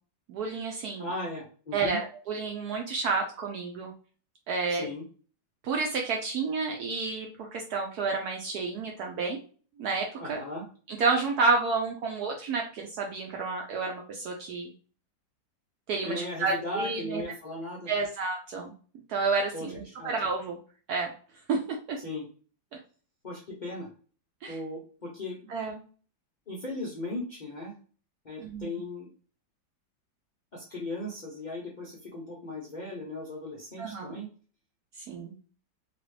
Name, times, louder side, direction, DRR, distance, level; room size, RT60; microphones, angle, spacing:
voice 1, 0.3-1.1 1.7-3.9 4.5-4.9 5.6-9.4 9.8-10.4 10.9-14.7 15.9-17.2 17.9-18.7 19.1-20.6 20.9-21.1 21.5-22.0 24.4-24.6 25.5-25.8 28.4-28.8 33.8-34.2 35.0-35.3, right 4 dB, 70° right, 1 dB, 1.0 m, -30 dB
voice 2, 1.0-2.0 4.7-5.0 10.2-10.6 16.0-17.9 19.5-19.7 20.0-20.1 22.0-22.3 23.2-23.9 24.5-25.4 26.5-27.7 28.2-29.1 30.5-34.3, left 2 dB, 70° left, -4 dB, 0.4 m, -37 dB
2.9 x 2.9 x 3.1 m, 0.40 s
omnidirectional pair, 2.0 m